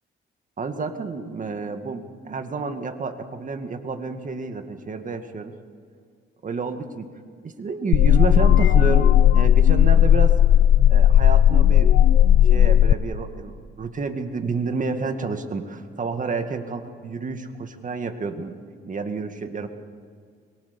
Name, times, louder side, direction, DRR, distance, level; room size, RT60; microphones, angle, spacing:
voice 1, 0.6-5.5 6.4-7.1 7.4-10.4 10.9-11.9 12.4-18.6 18.9-19.7, right 4 dB, 40° right, 7 dB, 2.1 m, -29 dB
sound 1, 7.9-12.9, left 10 dB, 80° left, 0.8 m, -15 dB
24.5 x 23.0 x 7.1 m, 2.1 s
cardioid pair, 90°, 20 cm